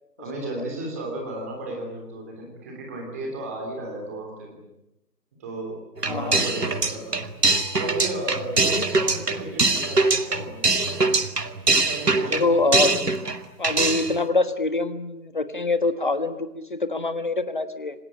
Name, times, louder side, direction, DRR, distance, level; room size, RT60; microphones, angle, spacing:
voice 1, 0.2-4.6 5.4-5.7 6.0-7.2 7.7-10.8 11.6-12.5, right 2 dB, 10° right, 1 dB, 3.2 m, -34 dB
sound 1, 6.0-13.4 13.6-14.2, right 3 dB, 70° right, 2.5 m, -22 dB
voice 2, 6.1-6.4 8.7-9.0 12.3-13.0 13.6-17.9, left 3 dB, 30° left, 11 dB, 1.5 m, -25 dB
27.5 x 19.5 x 10.0 m, 0.89 s
figure-of-eight pair, 170°, 49 cm